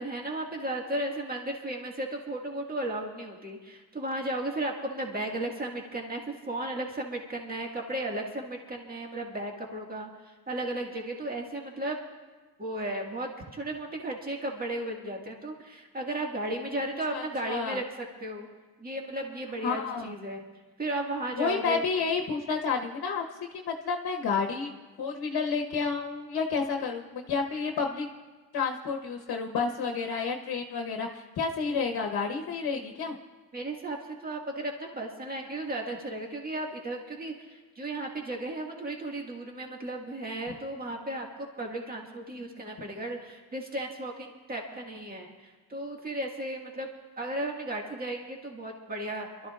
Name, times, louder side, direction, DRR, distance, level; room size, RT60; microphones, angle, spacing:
voice 1, 0.0-12.0 12.6-18.5 18.8-20.4 20.8-21.9 33.5-46.9 47.2-49.5, right 1 dB, 25° right, 0 dB, 2.0 m, -35 dB
voice 2, 17.1-17.8 19.6-20.1 21.4-23.2 23.5-24.7 25.0-28.1 28.5-33.2, left 5 dB, 80° left, 1 dB, 1.2 m, -30 dB
27.0 x 13.0 x 2.5 m, 1.3 s
cardioid pair, 115°, 37 cm